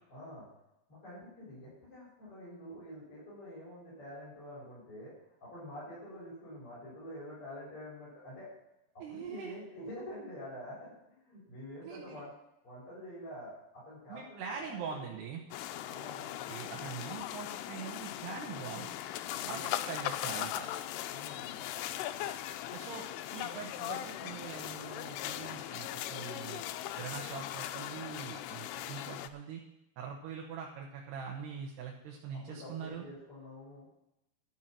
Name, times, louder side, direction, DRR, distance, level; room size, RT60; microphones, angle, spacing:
voice 1, 0.1-0.5 0.9-5.1 5.4-8.5 8.9-10.9 11.2-12.3 12.6-15.2 15.9-16.5 19.3-19.8 21.1-21.7 32.5-33.9, left 1 dB, 35° left, -10 dB, 6.6 m, -47 dB
voice 2, 9.0-9.6 11.8-12.2 14.1-15.4 16.5-18.9 19.5-20.7 22.7-23.1 23.3-26.6 27.0-29.6 30.0-33.0, right 7 dB, 80° right, -1 dB, 3.3 m, -43 dB
sound 1, 15.5-29.3, left 12 dB, 85° left, 2.7 m, -39 dB
12.0 x 7.2 x 7.4 m, 0.87 s
omnidirectional pair, 4.7 m